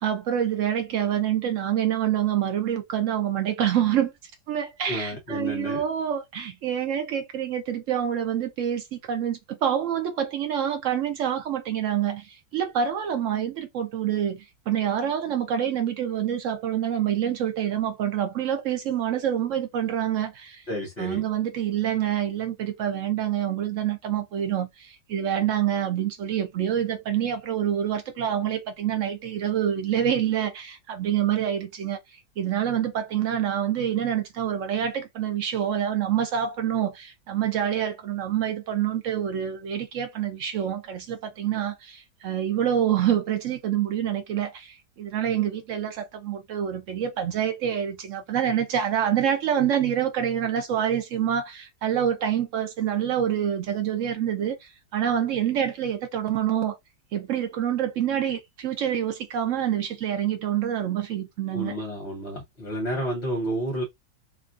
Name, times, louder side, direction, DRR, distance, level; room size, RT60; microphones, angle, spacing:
voice 1, 0.0-4.1 4.5-20.6 21.0-56.8 57.1-61.8, right 9 dB, 70° right, 0.7 m, -26 dB
voice 2, 4.9-5.8 20.7-21.2 61.5-63.8, equal, 45° left, 1.1 m, -30 dB
2.9 x 2.4 x 2.4 m
omnidirectional pair, 1.8 m